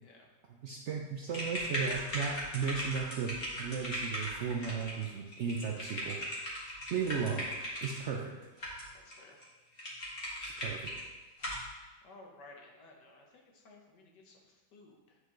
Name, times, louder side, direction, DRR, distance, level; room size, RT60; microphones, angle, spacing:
voice 1, 0.6-3.3 3.6-6.2 6.9-7.5 7.8-8.4 10.4-10.9, right 6 dB, 65° right, 1 dB, 0.7 m, -35 dB
sound 1, 1.3-8.0 8.6-9.1 9.4-9.5 9.8-11.0 11.4-11.6, equal, 35° left, 1.9 m, -38 dB
voice 2, 9.0-9.4 12.0-15.2, left 2 dB, 85° left, 1 dB, 1.7 m, -56 dB
9.7 x 4.7 x 3.1 m, 1.2 s
omnidirectional pair, 1.8 m